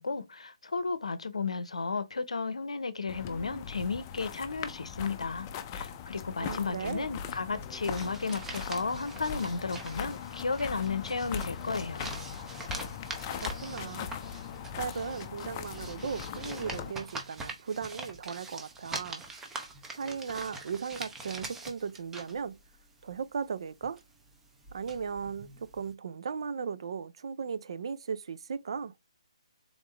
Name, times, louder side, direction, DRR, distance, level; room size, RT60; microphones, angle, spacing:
voice 1, 0.0-5.5 5.7-12.1, left 4 dB, 75° left, 0.7 m, -33 dB
sound 1, 3.1-16.9, left 7 dB, 25° left, 0.5 m, -40 dB
voice 2, 6.4-7.1 13.4-14.1 14.8-19.2 19.9-22.6 23.0-24.0 24.7-28.9, right 6 dB, 55° right, 0.5 m, -37 dB
sound 2, 7.6-25.9, right 3 dB, 10° right, 0.7 m, -44 dB
3.8 x 3.5 x 3.3 m
figure-of-eight pair, 145°, 3 cm